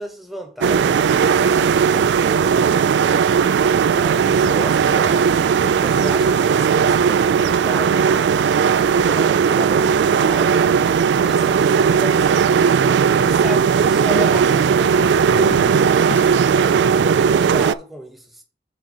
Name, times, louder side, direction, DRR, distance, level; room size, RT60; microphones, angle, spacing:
voice 1, 0.0-2.6 3.7-5.4 5.8-8.1 8.9-10.8 11.2-12.8 13.2-18.4, equal, ahead, 1.0 m, -34 dB
sound 1, 0.6-17.7, right 6 dB, 90° right, 0.3 m, -17 dB
sound 2, 4.0-16.5, left 3 dB, 90° left, 0.7 m, -41 dB
6.6 x 3.9 x 5.5 m
head